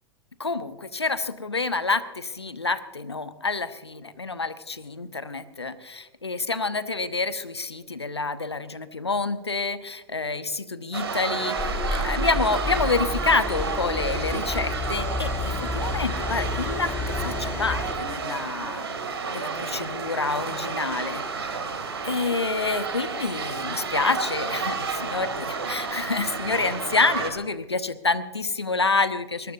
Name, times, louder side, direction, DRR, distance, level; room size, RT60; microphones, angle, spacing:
voice 1, 0.4-16.9 17.2-19.0 19.3-21.6 22.0-29.5, left 3 dB, 85° left, 13 dB, 1.0 m, -28 dB
sound 1, 10.9-27.3, right 5 dB, 75° right, 2.6 m, -31 dB
sound 2, 11.6-17.9, left 3 dB, 15° left, 1.5 m, -30 dB
22.0 x 19.5 x 2.7 m, 1.2 s
figure-of-eight pair, 90°, 13 cm